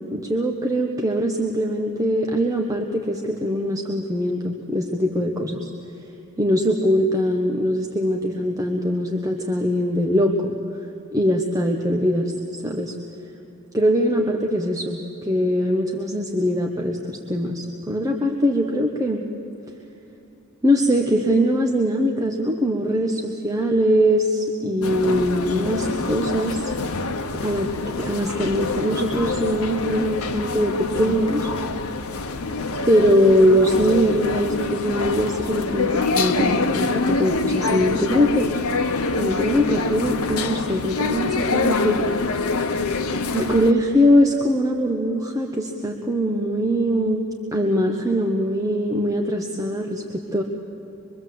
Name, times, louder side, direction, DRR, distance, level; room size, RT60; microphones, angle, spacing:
voice 1, 0.1-5.7 6.4-10.5 11.1-12.3 12.6-12.9 13.7-19.2 20.6-26.7 27.4-31.5 32.8-38.5 39.1-42.0 43.3-47.2 47.5-50.4, equal, 15° right, 1 dB, 1.1 m, -22 dB
sound 1, 24.8-43.7, left 3 dB, 85° left, 1.0 m, -25 dB
25.0 x 22.5 x 7.7 m, 2.9 s
head